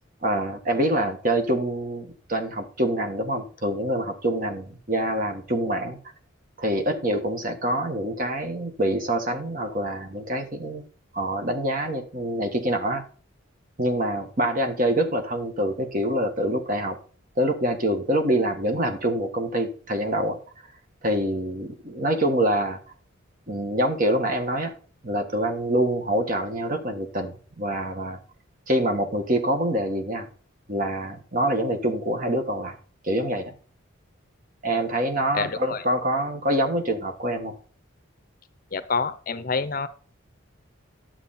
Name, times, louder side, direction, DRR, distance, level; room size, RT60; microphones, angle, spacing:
voice 1, 0.2-6.0 6.6-10.8 11.1-13.0 13.8-17.0 17.4-20.4 21.0-22.8 23.5-24.7 25.0-28.2 28.7-30.3 30.7-32.8 33.0-33.5 34.6-37.5, right 1 dB, 45° right, 5 dB, 1.5 m, -25 dB
voice 2, 35.3-35.8 38.7-39.9, left 5 dB, 45° left, 12 dB, 0.7 m, -27 dB
11.0 x 7.7 x 4.2 m, 0.39 s
head